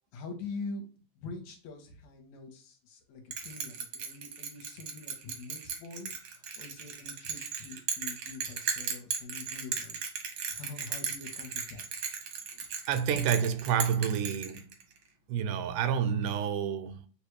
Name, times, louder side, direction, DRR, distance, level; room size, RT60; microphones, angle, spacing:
voice 1, 0.1-0.8 1.2-10.0 10.5-12.0, left 3 dB, 70° left, 2.1 m, -44 dB
Bell, 3.3-15.0, right 6 dB, 70° right, 1.2 m, -36 dB
voice 2, 12.9-14.7 15.3-17.1, right 8 dB, 90° right, 2.1 m, -29 dB
6.7 x 2.3 x 3.1 m
omnidirectional pair, 3.5 m